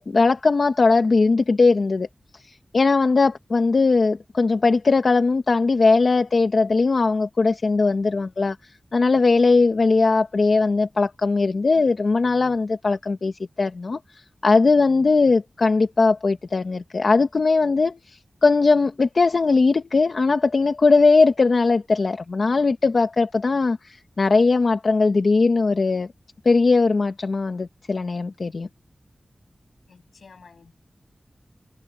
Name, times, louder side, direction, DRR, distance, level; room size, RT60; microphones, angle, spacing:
voice 1, 0.0-2.1 2.4-8.6 8.9-14.0 14.4-26.1 26.4-28.7, left 3 dB, 65° left, 1.3 m, -19 dB
voice 2, 29.9-30.7, left 5 dB, 85° left, 7.3 m, -50 dB
wide cardioid pair, 75°, 0 cm